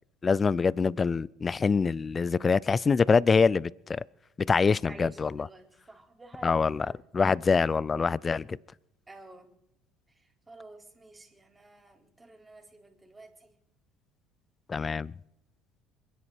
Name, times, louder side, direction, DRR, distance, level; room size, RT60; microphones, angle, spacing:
voice 1, 0.2-4.0 4.5-5.5 6.4-6.9 7.1-8.6 14.7-15.1, left 5 dB, 30° left, 0.5 m, -25 dB
voice 2, 4.6-7.0 7.4-7.7 9.1-9.5 10.1-13.5, right 2 dB, 20° right, 4.1 m, -51 dB
26.5 x 10.0 x 4.9 m
hypercardioid pair, 60°, 0 cm